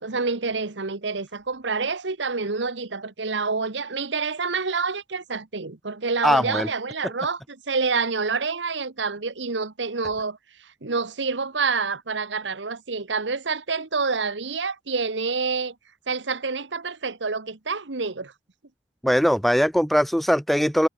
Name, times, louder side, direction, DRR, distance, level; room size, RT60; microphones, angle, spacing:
voice 1, 0.0-15.7 16.1-18.3, right 4 dB, 75° right, 1.3 m, -27 dB
voice 2, 6.2-6.7 19.0-20.9, equal, ahead, 0.4 m, -20 dB
head